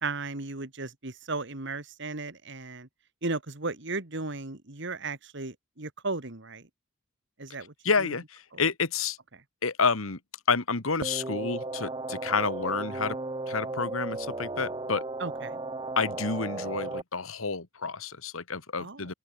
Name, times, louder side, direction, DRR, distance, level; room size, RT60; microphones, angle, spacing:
voice 1, 0.0-2.9 3.2-6.6 7.4-7.7 8.0-8.1 8.5-8.6 15.2-15.6 18.8-19.1, right 3 dB, 60° right, 2.1 m, -35 dB
voice 2, 7.8-9.2 9.6-10.2 10.5-13.2 13.5-15.0 16.0-19.1, left 4 dB, 90° left, 1.8 m, -29 dB
sound 1, 11.0-17.0, right 2 dB, 25° right, 0.9 m, -35 dB
open air
head